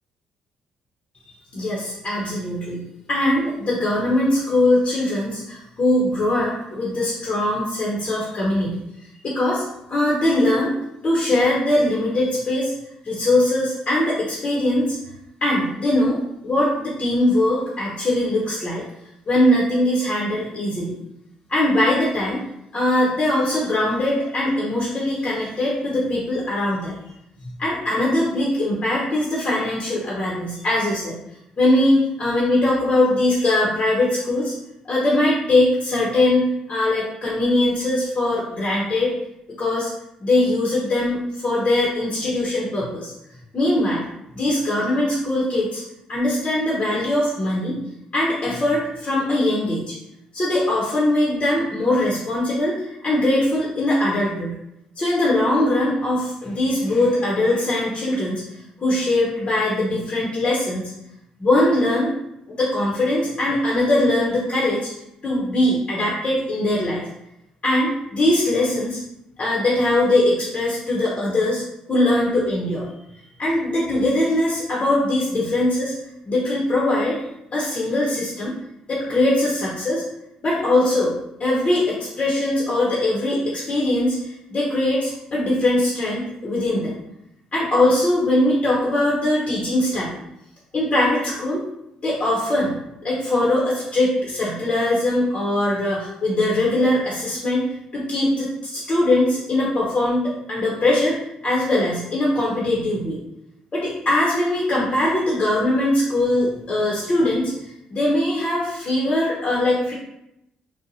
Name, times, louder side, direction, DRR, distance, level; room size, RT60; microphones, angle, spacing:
voice 1, 1.5-2.8 3.1-8.8 9.2-10.8 11.0-12.7 13.0-15.0 15.4-18.8 19.3-20.9 21.5-22.4 22.7-27.0 27.4-31.1 31.6-34.5 34.8-39.1 39.6-39.9 40.2-43.1 43.5-44.0 44.3-45.8 46.1-47.8 48.1-49.9 50.3-54.6 55.0-58.4 58.8-60.8 61.4-62.1 62.5-64.9 65.2-67.1 67.6-69.0 69.4-71.6 71.9-72.9 73.4-75.9 76.3-77.2 77.5-78.6 78.9-80.0 80.4-81.1 81.4-87.0 87.5-90.2 90.7-91.6 92.0-92.8 93.0-97.7 97.9-103.2 103.7-109.9, left 1 dB, 40° left, -5 dB, 0.7 m, -21 dB
2.6 x 2.1 x 2.7 m, 0.83 s
supercardioid pair, 55°, 3 cm